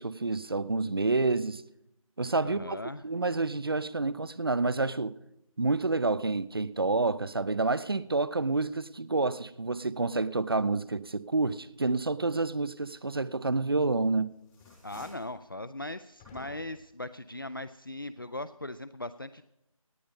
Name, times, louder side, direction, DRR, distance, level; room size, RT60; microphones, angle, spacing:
voice 1, 0.0-1.6 2.2-2.8 3.0-5.2 5.6-14.3, right 3 dB, 40° right, 0.5 m, -28 dB
voice 2, 2.4-3.0 14.8-19.4, left 2 dB, 40° left, 0.4 m, -39 dB
sound 1, 13.6-14.1 14.4-15.4 16.2-16.9, left 4 dB, 5° left, 1.0 m, -51 dB
18.0 x 9.3 x 5.3 m
figure-of-eight pair, 170°, 18 cm